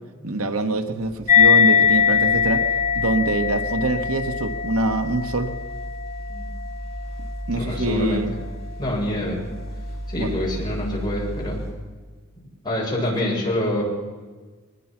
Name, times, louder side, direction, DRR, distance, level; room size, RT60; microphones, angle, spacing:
voice 1, 0.2-2.6 2.9-5.5 7.5-8.3 10.2-10.4, right 2 dB, 85° right, 7 dB, 1.5 m, -24 dB
sound 1, 1.0-11.7, equal, 30° right, 7.0 m, -35 dB
sound 2, 1.3-8.2, left 7 dB, 35° left, 4.0 m, -21 dB
voice 2, 7.5-8.3 8.8-9.5 10.1-11.6 12.6-13.8, left 1 dB, 20° left, -3 dB, 7.2 m, -26 dB
22.5 x 20.5 x 6.1 m, 1.4 s
head